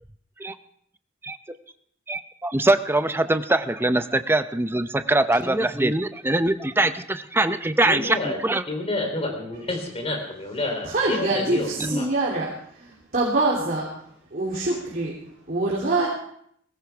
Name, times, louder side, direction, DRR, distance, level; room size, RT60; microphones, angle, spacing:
voice 1, 2.1-8.6 11.8-12.1, right 2 dB, 10° right, 10 dB, 0.6 m, -23 dB
voice 2, 7.8-8.4 8.7-12.1, left 2 dB, 30° left, 3 dB, 3.3 m, -29 dB
voice 3, 10.8-14.0 14.3-15.1 15.5-16.1, right 2 dB, 45° right, -4 dB, 3.2 m, -25 dB
20.0 x 16.5 x 3.5 m, 0.68 s
head